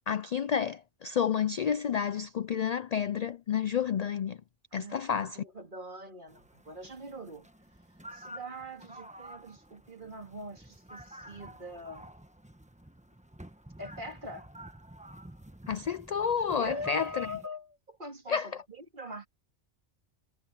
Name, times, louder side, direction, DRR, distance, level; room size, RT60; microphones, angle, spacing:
voice 1, 0.1-4.4 4.7-5.4 15.7-17.3 18.3-18.5, left 7 dB, 55° left, 0.4 m, -30 dB
voice 2, 4.7-5.1 5.3-7.5 8.1-12.1 13.8-14.5 16.5-19.3, left 1 dB, 45° right, 2.8 m, -42 dB
sound 1, 6.3-17.5, right 1 dB, 5° right, 1.2 m, -50 dB
omnidirectional pair, 1.2 m